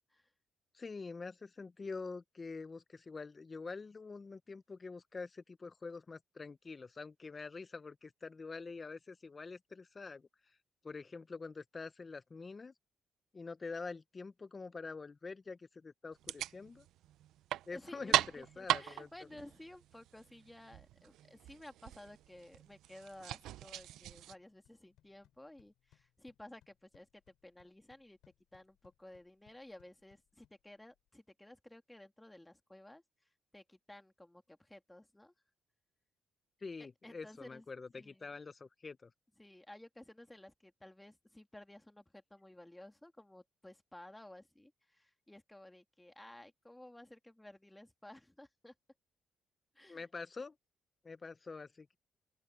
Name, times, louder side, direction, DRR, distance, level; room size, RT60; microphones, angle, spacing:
voice 1, 0.7-10.3 10.8-12.7 13.3-16.9 17.7-19.1 36.6-39.1 49.9-50.5 51.0-52.0, left 4 dB, 30° left, 0.8 m, -46 dB
sound 1, 16.1-24.3, right 13 dB, 85° right, 0.5 m, -39 dB
voice 2, 17.7-28.2 28.5-33.0 33.5-35.3 37.0-37.6 37.9-38.3 39.4-48.7 49.7-50.0, left 1 dB, 10° left, 2.6 m, -55 dB
sound 2, 24.1-31.1, left 14 dB, 85° left, 8.0 m, -72 dB
open air
cardioid pair, 90°, 0 cm